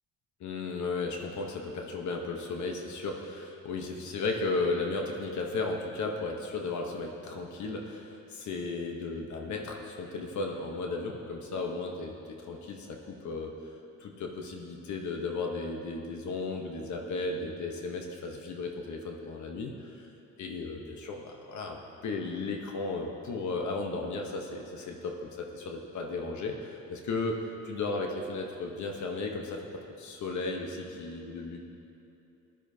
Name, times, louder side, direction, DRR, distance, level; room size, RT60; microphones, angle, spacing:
voice 1, 0.4-13.5 14.0-20.1 20.4-21.8 22.0-29.6 30.0-31.6, left 3 dB, 70° left, 1 dB, 1.1 m, -35 dB
15.0 x 11.5 x 2.8 m, 2.8 s
cardioid pair, 90°, 30 cm